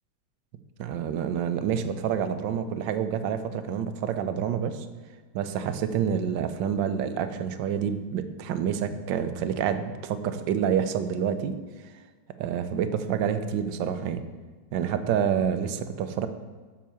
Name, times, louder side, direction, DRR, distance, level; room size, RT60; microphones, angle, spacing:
voice 1, 0.8-4.9 5.3-11.5 12.4-14.2 14.7-16.3, right 8 dB, 75° right, 10 dB, 1.3 m, -28 dB
7.4 x 5.6 x 7.0 m, 1.4 s
omnidirectional pair, 2.2 m